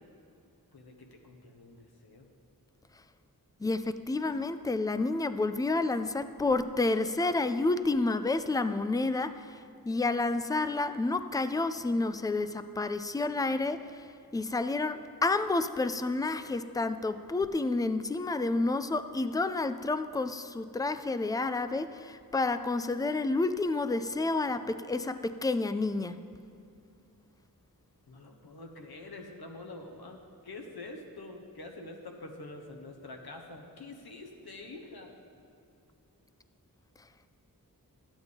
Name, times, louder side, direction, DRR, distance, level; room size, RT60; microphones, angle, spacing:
voice 1, 0.7-2.3 28.1-35.2, left 2 dB, 85° left, 2 dB, 1.2 m, -46 dB
voice 2, 3.6-9.6 9.9-14.1 14.3-26.2, left 3 dB, 10° left, 11 dB, 0.4 m, -30 dB
12.5 x 9.0 x 3.5 m, 2.6 s
wide cardioid pair, 55°, 37 cm